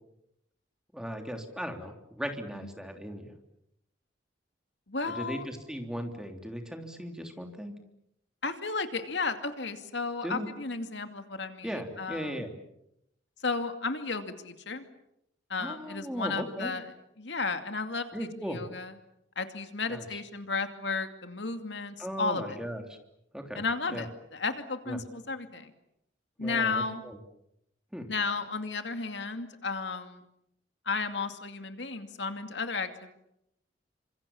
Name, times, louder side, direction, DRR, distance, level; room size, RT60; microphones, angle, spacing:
voice 1, 0.9-3.3 5.0-7.7 10.2-10.5 11.6-12.5 15.6-16.7 18.1-18.6 19.9-20.2 22.0-23.0 23.3-24.1 24.8-25.0 26.4-27.2 27.9-28.1, equal, 5° right, 4 dB, 3.3 m, -37 dB
voice 2, 4.9-5.4 8.4-11.7 12.0-12.5 13.4-14.8 15.5-16.8 17.2-18.9 19.4-22.6 23.6-25.7 26.4-27.0 28.1-30.2 30.9-33.1, left 4 dB, 65° left, 8 dB, 2.5 m, -33 dB
29.5 x 26.0 x 7.3 m, 0.79 s
head